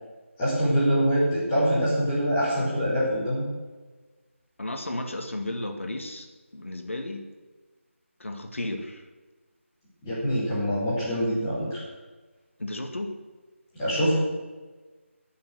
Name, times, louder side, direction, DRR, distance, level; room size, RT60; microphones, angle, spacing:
voice 1, 0.4-3.4 10.0-11.8 13.7-14.1, equal, 15° left, -9 dB, 5.1 m, -24 dB
voice 2, 4.6-6.3 6.5-7.3 8.2-9.1 12.6-13.2, left 1 dB, 65° left, 4 dB, 2.2 m, -33 dB
21.0 x 7.2 x 6.4 m, 1.3 s
figure-of-eight pair, 160°, 7 cm